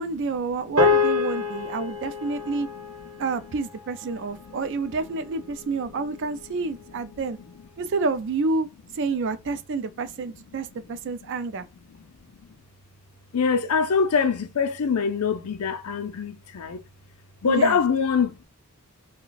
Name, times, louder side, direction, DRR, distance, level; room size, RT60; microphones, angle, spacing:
voice 1, 0.0-2.7 3.2-7.4 7.8-8.7 9.0-11.7 17.4-17.8, right 4 dB, 55° right, 0.4 m, -28 dB
sound 1, 0.8-5.3, left 4 dB, 80° right, 1.0 m, -27 dB
voice 2, 13.3-16.8 17.4-18.4, left 5 dB, 85° left, 0.5 m, -24 dB
2.4 x 2.2 x 3.8 m
head